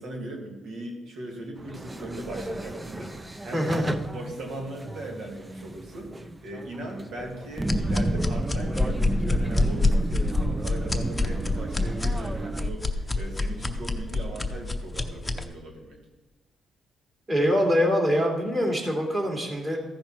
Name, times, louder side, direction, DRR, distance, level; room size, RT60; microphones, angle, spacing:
voice 1, 0.0-3.7 4.1-16.0, right 1 dB, 75° right, 0 dB, 2.4 m, -39 dB
sound 1, 1.6-12.7, right 2 dB, 15° right, 0.5 m, -33 dB
voice 2, 3.5-3.9 17.3-19.8, equal, 30° right, 0 dB, 2.8 m, -24 dB
sound 2, 7.6-15.5, left 2 dB, 10° left, 0.8 m, -27 dB
14.0 x 5.7 x 4.5 m, 1.2 s
cardioid pair, 90°, 0 cm